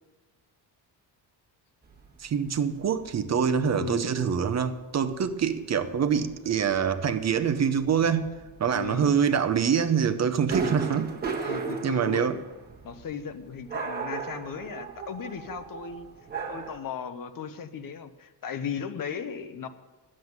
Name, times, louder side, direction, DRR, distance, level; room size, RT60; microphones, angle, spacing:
sound 1, 1.8-2.1 2.3-2.6 2.8-5.1 5.5-5.8 6.1-6.3 6.6-6.8 7.0-9.9 10.5-13.3 13.7-16.8, right 5 dB, 20° right, 1.4 m, -36 dB
voice 1, 2.2-8.3 8.6-11.1 11.8-12.4, right 7 dB, 40° right, 0.7 m, -25 dB
voice 2, 8.7-9.2 11.4-12.4 12.8-16.1 16.5-19.7, left 7 dB, 50° left, 0.9 m, -36 dB
11.5 x 7.6 x 9.4 m
cardioid pair, 160°, 44 cm